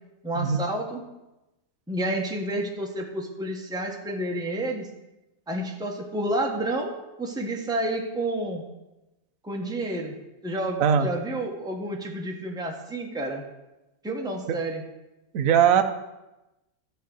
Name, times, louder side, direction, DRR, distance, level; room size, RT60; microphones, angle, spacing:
voice 1, 0.2-1.0 1.9-4.9 5.5-6.9 7.2-8.6 9.4-10.2 10.4-13.4 14.0-14.8, right 1 dB, 5° right, 0 dB, 1.1 m, -30 dB
voice 2, 15.3-15.8, right 8 dB, 60° right, 6 dB, 1.0 m, -19 dB
13.0 x 4.6 x 7.9 m, 0.99 s
omnidirectional pair, 1.8 m